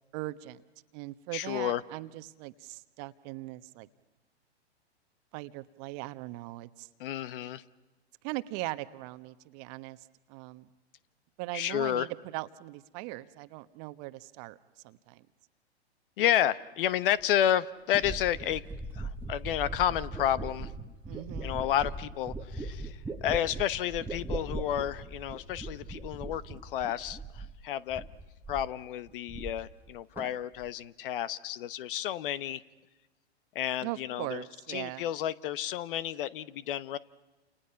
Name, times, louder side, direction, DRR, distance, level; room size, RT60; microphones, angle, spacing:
voice 1, 0.1-0.6 0.9-3.9 5.3-6.9 8.2-10.0 10.3-10.7 11.4-14.6 14.8-15.2 21.1-21.6 33.8-35.0, right 19 dB, 40° right, 13 dB, 1.2 m, -40 dB
voice 2, 1.3-1.8 7.0-7.6 11.5-12.1 16.2-18.6 19.0-20.7 21.4-22.9 23.2-28.0 28.5-32.6 33.5-34.4 34.7-37.0, left 11 dB, 50° left, 18 dB, 1.1 m, -31 dB
sound 1, 17.2-17.3 17.9-27.6 27.9-28.8 29.1-29.9 30.2-30.7, right 2 dB, 5° right, 1.4 m, -40 dB
29.5 x 29.0 x 5.8 m, 1.1 s
hypercardioid pair, 115°, 33 cm